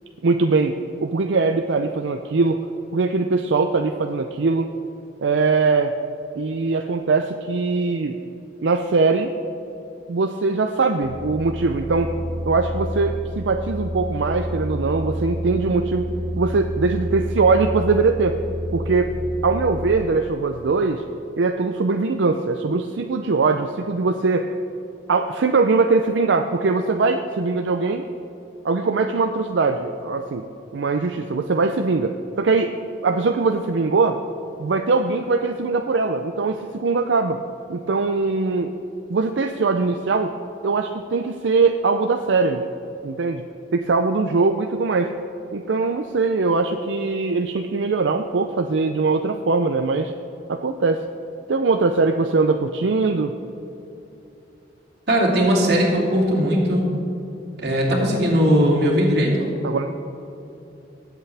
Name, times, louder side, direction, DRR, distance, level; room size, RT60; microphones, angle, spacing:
voice 1, 0.2-0.7 1.0-2.6 2.9-4.7 5.2-5.9 6.4-8.2 8.6-9.3 10.1-12.1 12.5-16.1 16.4-18.4 18.7-19.1 19.4-21.0 21.4-24.5 25.1-28.0 28.6-30.4 30.7-32.7 33.0-34.2 34.6-37.4 37.7-38.7 39.1-40.3 40.6-42.6 43.0-43.4 43.7-45.1 45.5-50.1 50.5-51.0 51.5-53.3 59.6-60.0, right 4 dB, 85° right, 6 dB, 0.5 m, -21 dB
sound 1, 11.0-20.0, equal, 20° right, 1.2 m, -29 dB
voice 2, 55.1-56.9 57.6-59.5, equal, 60° right, -3 dB, 2.7 m, -19 dB
19.0 x 8.2 x 3.4 m, 2.9 s
head